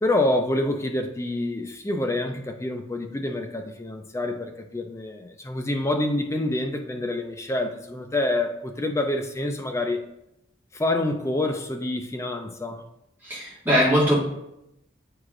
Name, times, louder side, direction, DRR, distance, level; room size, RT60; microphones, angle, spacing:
voice 1, 0.0-10.0 10.7-12.8, left 1 dB, 15° left, 4 dB, 0.4 m, -27 dB
voice 2, 13.2-14.2, equal, 10° right, -8 dB, 1.9 m, -21 dB
8.6 x 4.7 x 2.5 m, 0.84 s
head